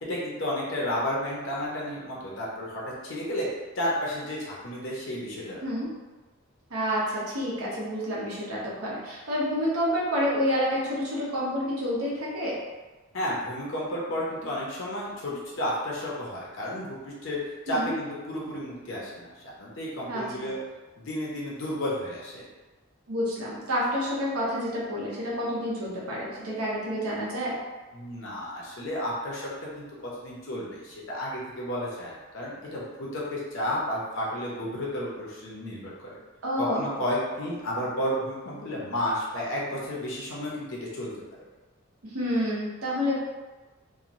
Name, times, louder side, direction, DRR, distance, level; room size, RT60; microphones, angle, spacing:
voice 1, 0.0-3.5 3.8-5.6 13.1-17.4 17.7-20.6 21.0-22.5 27.9-29.8 30.2-36.2 36.6-41.1, left 1 dB, 60° left, -5 dB, 0.6 m, -32 dB
voice 2, 6.7-12.6 17.7-17.9 20.1-20.5 23.1-27.6 36.4-36.8 42.1-43.2, equal, 80° right, -6 dB, 0.8 m, -29 dB
2.9 x 2.1 x 2.5 m, 1.2 s
head